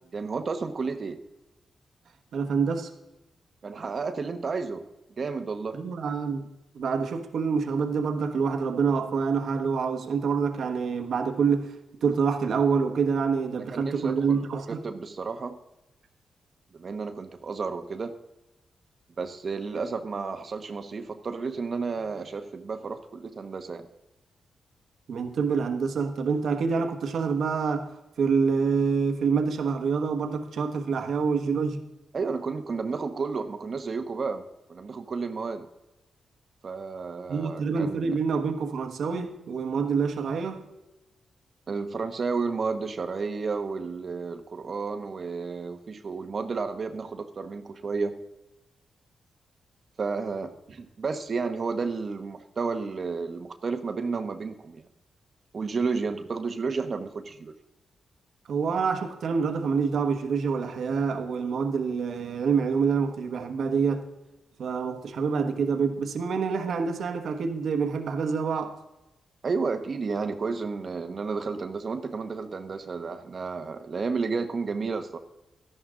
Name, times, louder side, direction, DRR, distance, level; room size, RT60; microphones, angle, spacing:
voice 1, 0.1-1.2 3.6-4.8 5.2-5.8 13.7-14.4 14.7-15.6 16.7-18.1 19.2-23.9 32.1-35.7 36.6-38.2 41.7-48.2 50.0-54.9 55.5-57.5 69.4-75.2, right 4 dB, 50° right, 1.0 m, -32 dB
voice 2, 2.3-2.9 5.7-6.4 6.7-11.7 12.0-14.8 25.1-27.9 28.2-31.8 37.3-40.6 58.5-64.1 64.6-68.8, right 5 dB, 75° right, 1.2 m, -26 dB
13.0 x 11.0 x 3.7 m
cardioid pair, 65°, 0 cm